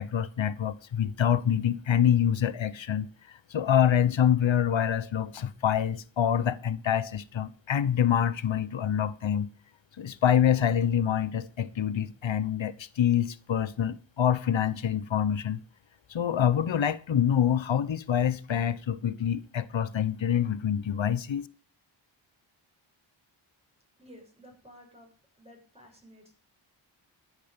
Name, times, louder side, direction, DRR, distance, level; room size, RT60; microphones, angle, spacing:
voice 1, 0.0-9.5 10.0-15.6 16.1-21.5, left 9 dB, 65° left, 1.1 m, -26 dB
voice 2, 24.0-25.1 25.4-26.3, equal, 10° right, 7.0 m, -53 dB
14.5 x 10.0 x 5.3 m
wide cardioid pair, 80°, 49 cm